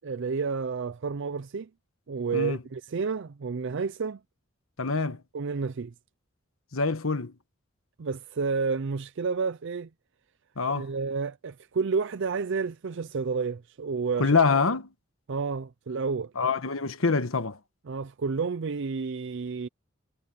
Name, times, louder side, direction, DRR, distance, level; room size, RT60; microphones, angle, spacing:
voice 1, 0.0-1.7 2.1-4.2 5.3-5.9 8.0-9.9 10.7-14.4 15.3-16.3 17.9-19.7, right 5 dB, 60° right, 0.5 m, -30 dB
voice 2, 4.8-5.2 6.7-7.3 10.6-10.9 14.2-14.9 16.4-17.6, left 4 dB, 80° left, 1.3 m, -25 dB
head